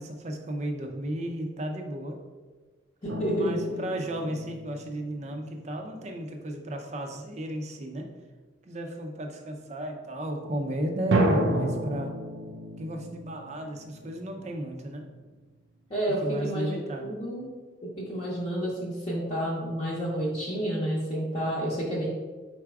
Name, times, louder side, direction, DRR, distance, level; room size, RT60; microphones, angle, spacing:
voice 1, 0.0-2.2 3.3-8.1 8.6-12.1 12.8-15.0 16.2-17.1, right 1 dB, 35° right, 4 dB, 0.5 m, -34 dB
voice 2, 3.0-3.6 15.9-17.5 17.8-22.1, equal, 30° left, -7 dB, 0.7 m, -30 dB
sound 1, 3.1-6.2 11.1-14.7, right 1 dB, 85° right, 0.5 m, -31 dB
4.6 x 4.1 x 2.3 m, 1.3 s
head